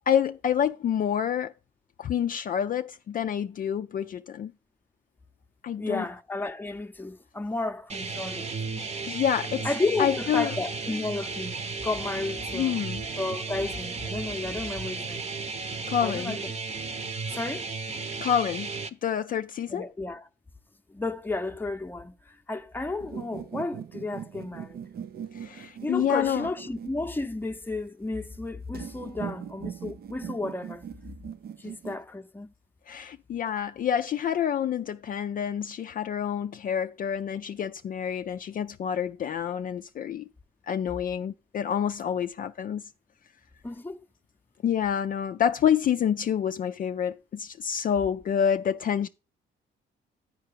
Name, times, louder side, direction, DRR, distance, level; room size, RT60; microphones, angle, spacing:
voice 1, 0.1-1.5 2.0-4.5 5.6-6.0 9.1-9.7 10.0-10.6 12.5-13.0 15.9-16.4 18.2-18.7 19.0-19.9 25.3-26.5 32.9-40.3 40.7-42.8 44.6-49.1, left 9 dB, 45° left, 0.4 m, -28 dB
voice 2, 5.8-8.5 9.6-11.6 11.8-12.8 13.2-15.2 16.0-16.4 17.3-17.7 19.7-20.3 20.9-24.8 25.8-30.8 31.6-32.5 43.6-44.0, left 2 dB, 10° left, 0.7 m, -32 dB
sound 1, 7.9-18.9, right 4 dB, 35° right, 0.9 m, -34 dB
sound 2, 23.0-27.5 28.7-32.0, right 8 dB, 50° right, 0.5 m, -40 dB
10.5 x 4.5 x 6.7 m
cardioid pair, 90°, 20 cm